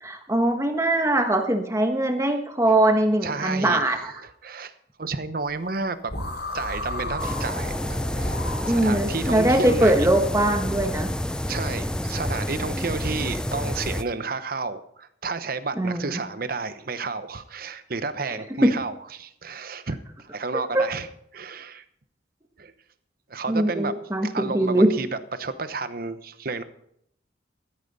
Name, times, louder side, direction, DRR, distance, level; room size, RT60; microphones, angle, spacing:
voice 1, 0.0-4.1 8.7-11.1 15.8-16.2 18.6-18.7 20.7-20.8 23.5-24.9, right 1 dB, 15° right, 5 dB, 1.2 m, -21 dB
voice 2, 3.2-4.7 5.0-6.1 6.5-10.1 11.5-21.1 21.3-21.8 22.6-22.7 23.3-23.9 24.2-26.6, right 4 dB, 50° right, 12 dB, 0.9 m, -31 dB
sound 1, 6.1-9.3, left 1 dB, 70° left, 5.3 m, -33 dB
sound 2, 7.2-14.0, left 1 dB, 5° left, 0.4 m, -29 dB
14.0 x 13.0 x 4.1 m, 0.72 s
head